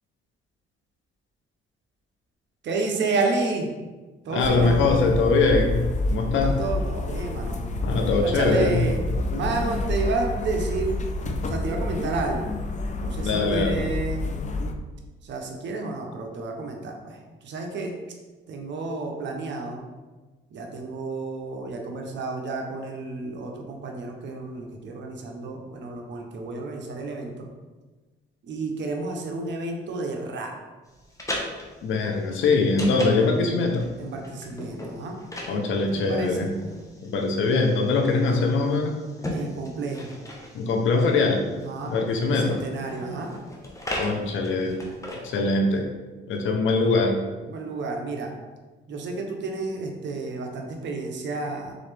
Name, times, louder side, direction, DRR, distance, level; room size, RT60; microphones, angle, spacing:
voice 1, 2.6-3.7 4.2-4.8 6.3-7.7 8.2-9.0 9.3-11.0 11.5-12.5 13.0-14.2 15.2-17.9 18.5-19.9 20.5-27.5 28.4-30.5 34.0-35.2 35.9-36.5 39.3-40.1 41.5-41.9 42.3-43.3 47.5-48.3 48.9-51.8, right 3 dB, 65° right, 2 dB, 0.8 m, -30 dB
voice 2, 4.3-6.5 7.8-8.8 13.2-13.8 31.8-33.9 35.5-36.5 37.0-39.0 40.5-41.4 41.9-42.6 44.0-44.8 45.2-45.9 46.3-47.2, left 3 dB, 80° left, 3 dB, 0.8 m, -22 dB
sound 1, 4.4-14.7, left 2 dB, 35° left, 0.5 m, -29 dB
sound 2, 30.9-45.5, left 1 dB, 15° left, 0.9 m, -38 dB
4.0 x 4.0 x 3.4 m, 1.3 s
cardioid pair, 90°, 20 cm